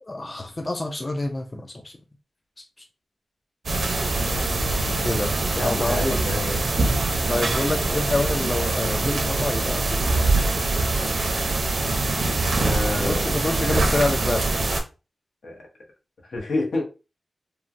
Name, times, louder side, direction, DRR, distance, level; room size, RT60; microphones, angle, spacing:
voice 1, 0.0-1.9 5.0-6.5 7.3-10.5 12.9-14.5, left 2 dB, 25° left, 4 dB, 0.3 m, -28 dB
sound 1, 3.7-14.8, right 2 dB, 50° right, 0.6 m, -23 dB
voice 2, 5.5-6.6 12.6-14.0 15.4-15.6 16.3-16.8, left 2 dB, 75° left, 0 dB, 0.9 m, -29 dB
3.1 x 2.1 x 2.5 m, 0.30 s
wide cardioid pair, 170°, 0 cm